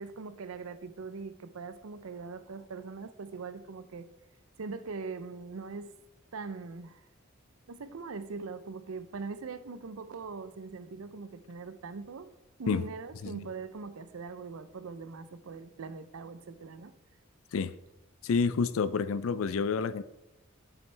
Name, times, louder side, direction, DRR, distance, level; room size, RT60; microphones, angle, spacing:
voice 1, 0.0-4.1 4.6-5.9 6.3-7.0 7.7-12.3 12.6-16.9, right 4 dB, 80° right, 13 dB, 0.5 m, -41 dB
voice 2, 18.2-20.0, left 5 dB, 75° left, 15 dB, 0.4 m, -29 dB
8.8 x 7.1 x 3.3 m, 0.90 s
head